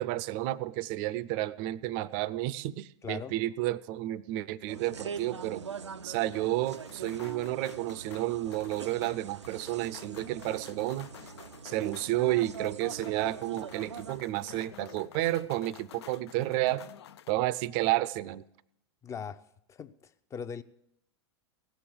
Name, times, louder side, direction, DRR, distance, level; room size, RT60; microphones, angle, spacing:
voice 1, 0.0-5.6 6.0-11.1 11.6-16.8 17.3-18.4, right 16 dB, 45° right, 0.5 m, -31 dB
voice 2, 3.0-3.3 19.0-19.4 19.7-20.6, left 6 dB, 20° left, 0.6 m, -40 dB
sound 1, 4.7-14.2, right 6 dB, 90° right, 0.5 m, -43 dB
sound 2, 6.3-17.3, left 9 dB, 70° left, 0.5 m, -51 dB
17.0 x 7.0 x 7.7 m
figure-of-eight pair, 95°, 14 cm